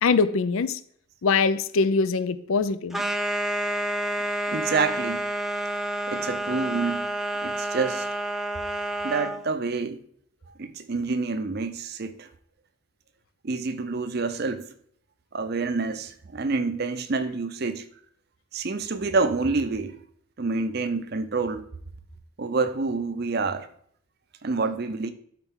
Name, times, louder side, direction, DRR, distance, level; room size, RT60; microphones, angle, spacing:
voice 1, 0.0-0.8 1.2-3.0, left 4 dB, 75° left, 0.4 m, -23 dB
sound 1, 2.9-9.4, right 1 dB, ahead, 0.5 m, -29 dB
voice 2, 4.5-5.2 6.1-7.2 7.4-8.1 9.0-10.0 10.6-12.3 13.4-14.7 15.3-17.9 18.5-20.0 20.4-21.6 22.4-23.7 24.4-25.1, right 4 dB, 50° right, 0.6 m, -27 dB
12.0 x 4.6 x 3.7 m
head